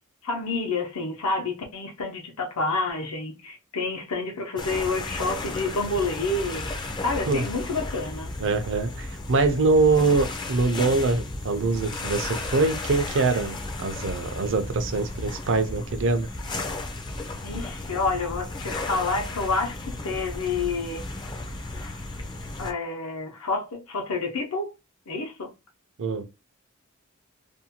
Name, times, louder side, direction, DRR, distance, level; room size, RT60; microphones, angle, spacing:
voice 1, 0.2-6.7 7.0-8.3 17.4-21.0 21.7-22.0 22.6-24.7 25.1-25.5, left 3 dB, 85° left, 0.8 m, -29 dB
sound 1, 4.6-22.7, left 2 dB, 20° left, 0.4 m, -34 dB
voice 2, 8.4-16.3 26.0-26.2, right 3 dB, 60° right, 0.5 m, -24 dB
2.6 x 2.2 x 2.8 m
head